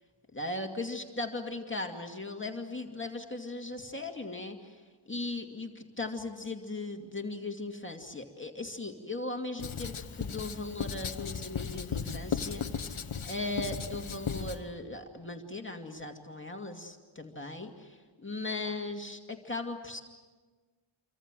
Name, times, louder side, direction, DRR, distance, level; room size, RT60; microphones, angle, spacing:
voice 1, 0.3-20.0, left 2 dB, 25° left, 2 dB, 2.4 m, -38 dB
Writing, 9.6-14.6, left 6 dB, 85° left, 1.3 m, -36 dB
28.0 x 24.5 x 7.6 m, 1.4 s
wide cardioid pair, 80°, 47 cm